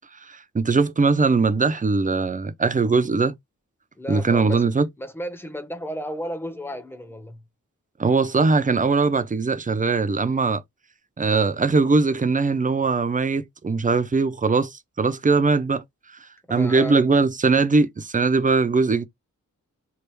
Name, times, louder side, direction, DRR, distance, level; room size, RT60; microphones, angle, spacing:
voice 1, 0.3-3.3 4.1-4.9 8.0-10.6 11.2-15.8 16.5-19.1, right 4 dB, 25° right, 0.5 m, -20 dB
voice 2, 4.0-7.4 16.5-17.0, equal, 5° left, 0.8 m, -34 dB
3.4 x 2.3 x 3.0 m
cardioid pair, 65°, 32 cm